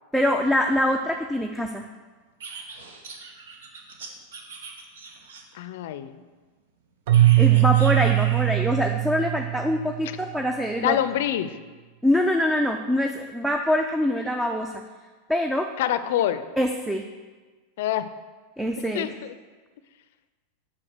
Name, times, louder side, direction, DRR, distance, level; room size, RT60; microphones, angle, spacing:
voice 1, 0.1-1.8 7.4-11.0 12.0-14.8 15.3-15.7 16.6-17.0 18.6-19.1, left 1 dB, 5° right, 3 dB, 0.4 m, -24 dB
sound 1, 2.4-5.7 7.1-8.6, right 4 dB, 85° right, 0.9 m, -41 dB
voice 2, 5.5-6.1 10.8-11.5 15.8-16.4 17.8-18.1 18.9-19.3, left 11 dB, 70° left, 13 dB, 0.4 m, -25 dB
Keyboard (musical), 7.1-10.2, right 17 dB, 70° right, 0.4 m, -20 dB
5.7 x 4.9 x 6.1 m, 1.4 s
supercardioid pair, 120°, 0 cm